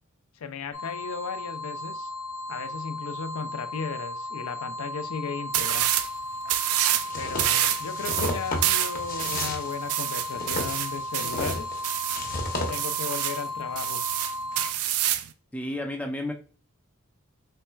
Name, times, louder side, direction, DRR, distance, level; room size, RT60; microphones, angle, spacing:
voice 1, 0.4-2.1 2.5-5.9 7.2-11.8 12.7-14.0, left 5 dB, 90° left, 0.4 m, -36 dB
sound 1, 0.7-14.7, left 2 dB, 60° left, 1.0 m, -35 dB
sound 2, 5.5-6.1 6.5-7.1 7.4-12.3 12.7-13.4 13.8-15.3, right 12 dB, 85° right, 0.4 m, -27 dB
sound 3, 7.0-12.7, left 1 dB, 40° left, 0.8 m, -33 dB
voice 2, 15.5-16.3, left 1 dB, 5° left, 0.4 m, -31 dB
4.2 x 3.2 x 2.2 m
head